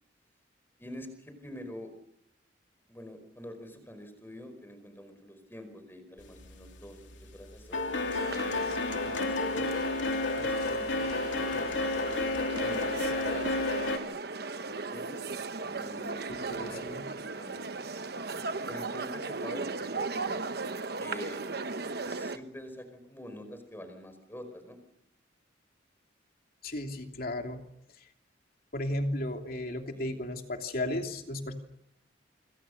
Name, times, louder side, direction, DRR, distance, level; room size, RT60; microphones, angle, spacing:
voice 1, 0.8-1.9 2.9-8.7 9.0-9.9 10.3-13.7 14.6-15.2 15.6-16.2 16.5-17.7 18.7-20.5 21.0-21.5 22.0-24.8 29.9-30.1, equal, 10° left, 8 dB, 4.9 m, -46 dB
sound 1, 6.4-6.8 7.1-14.0, left 2 dB, 75° left, 3.0 m, -31 dB
sound 2, 8.1-22.4, right 3 dB, 55° right, 1.1 m, -37 dB
voice 2, 16.3-17.1 26.6-27.6 28.0-28.1 28.7-31.5, left 1 dB, 50° left, 4 dB, 2.9 m, -34 dB
27.0 x 26.5 x 6.6 m, 0.77 s
head